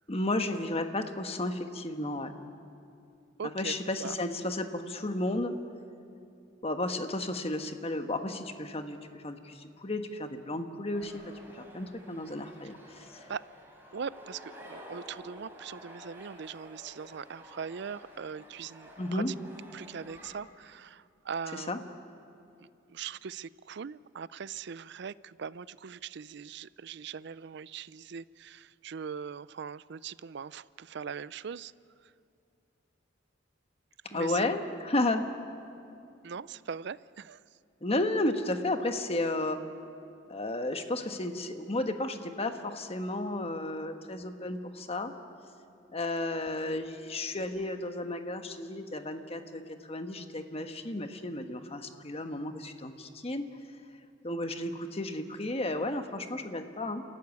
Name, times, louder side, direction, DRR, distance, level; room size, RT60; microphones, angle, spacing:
voice 1, 0.1-2.3 3.5-5.5 6.6-13.3 19.0-19.3 21.5-21.8 34.0-35.3 37.8-39.6 40.3-45.1 45.9-53.4 54.2-57.0, left 2 dB, 30° left, 7 dB, 1.3 m, -33 dB
voice 2, 3.4-3.7 4.0-4.2 13.3-13.4 13.9-19.2 19.7-21.8 22.6-31.7 34.1-34.5 36.2-37.4, right 6 dB, 60° right, 18 dB, 0.5 m, -41 dB
sound 1, 10.9-20.3, equal, 10° right, 4.3 m, -51 dB
28.0 x 14.5 x 9.5 m, 2.6 s
head